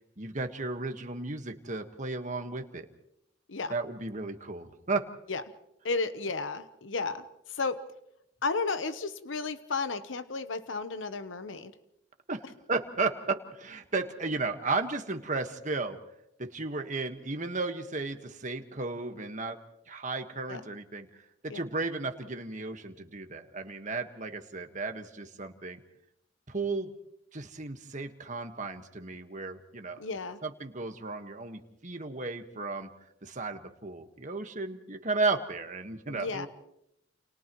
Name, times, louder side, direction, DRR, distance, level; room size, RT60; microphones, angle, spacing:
voice 1, 0.2-2.9 3.7-5.1 12.3-12.4 12.7-16.0 16.4-19.6 19.9-21.1 21.4-25.8 26.5-26.9 27.3-30.0 30.4-32.9 33.2-36.5, right 3 dB, 40° right, 6 dB, 1.5 m, -34 dB
voice 2, 5.8-7.8 8.4-11.7 20.5-20.6 21.5-21.6 30.0-30.4 36.1-36.5, left 4 dB, 90° left, 11 dB, 0.9 m, -33 dB
29.5 x 29.0 x 3.1 m, 0.80 s
head